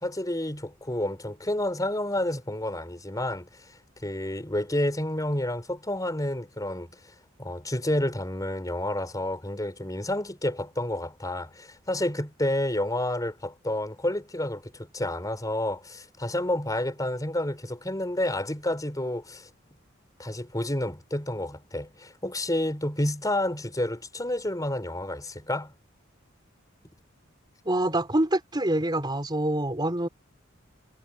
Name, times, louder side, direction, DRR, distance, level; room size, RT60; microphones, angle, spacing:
voice 1, 0.0-3.5 4.0-6.9 7.4-19.5 20.2-25.7, left 1 dB, 20° left, 4.1 m, -29 dB
voice 2, 27.7-30.1, right 1 dB, 20° right, 4.0 m, -26 dB
head